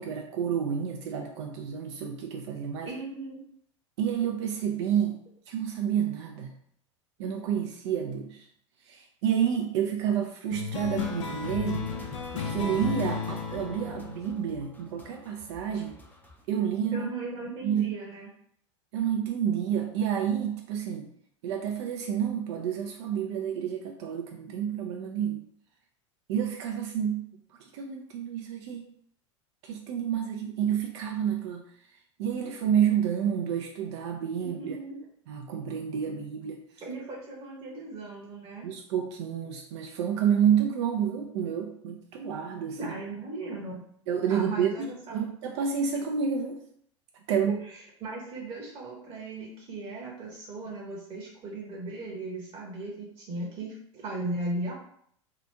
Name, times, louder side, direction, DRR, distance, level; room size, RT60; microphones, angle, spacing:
voice 1, 0.0-2.9 4.0-5.2 5.5-6.5 7.2-8.4 8.9-11.9 12.3-15.9 16.5-17.1 17.6-17.9 18.9-21.1 21.4-25.4 26.3-27.2 27.7-28.9 29.6-31.7 32.2-34.8 35.3-36.7 38.6-42.9 44.1-46.6 47.3-47.6, right 8 dB, 65° right, 3 dB, 0.4 m, -29 dB
voice 2, 2.8-3.4 16.9-18.3 34.4-35.0 36.8-38.7 42.8-43.8 44.3-45.3 47.4-54.7, right 2 dB, 35° right, -3 dB, 0.9 m, -37 dB
sound 1, 10.5-15.4, left 5 dB, 75° left, 0.5 m, -34 dB
sound 2, 10.8-16.5, left 2 dB, 10° left, 0.6 m, -49 dB
2.8 x 2.5 x 3.3 m, 0.66 s
hypercardioid pair, 85°, 16 cm